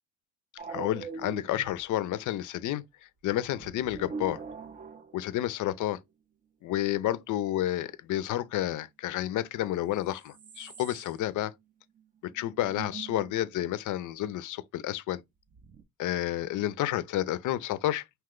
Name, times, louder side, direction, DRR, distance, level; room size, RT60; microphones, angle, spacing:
sound 1, 0.6-1.8 3.4-5.5 9.7-9.8 10.0-11.3 11.6-11.7 12.0-12.1 12.4-13.4 15.5-15.8, right 5 dB, 20° right, 0.3 m, -43 dB
voice 1, 0.7-2.8 3.2-4.4 5.1-6.0 6.6-11.5 12.3-15.2 16.0-18.0, left 13 dB, 50° left, 0.5 m, -30 dB
2.8 x 2.1 x 3.6 m
supercardioid pair, 75°, 41 cm